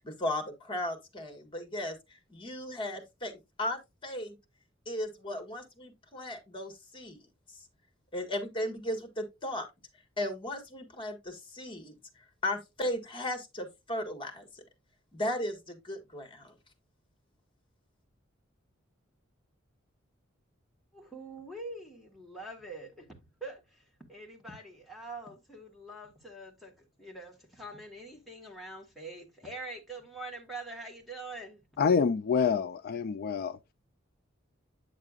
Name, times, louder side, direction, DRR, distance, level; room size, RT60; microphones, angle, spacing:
voice 1, 0.0-4.4 4.8-7.2 8.1-9.7 10.2-11.9 12.4-14.5 15.1-16.5, left 1 dB, 25° left, 1.5 m, -36 dB
voice 2, 20.9-31.6, right 2 dB, ahead, 1.5 m, -44 dB
voice 3, 31.8-33.6, left 6 dB, 50° left, 0.3 m, -27 dB
9.0 x 6.5 x 2.4 m
head